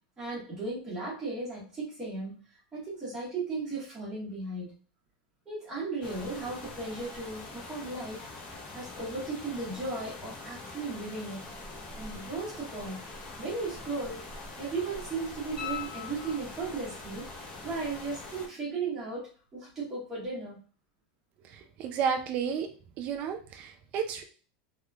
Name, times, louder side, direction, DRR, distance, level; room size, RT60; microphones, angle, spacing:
voice 1, 0.2-2.4 2.7-4.7 5.4-8.3 8.7-11.4 12.0-13.1 13.4-14.2 14.6-17.3 17.6-20.6, right 3 dB, 15° right, -7 dB, 1.7 m, -36 dB
sound 1, 6.0-18.5, left 2 dB, 20° left, 0.7 m, -44 dB
sound 2, 15.6-16.9 19.7-19.8, left 11 dB, 80° left, 1.6 m, -40 dB
voice 2, 21.5-22.7 23.0-24.2, right 7 dB, 30° right, 5 dB, 0.4 m, -32 dB
3.5 x 3.2 x 2.4 m, 0.38 s
supercardioid pair, 170°, 5 cm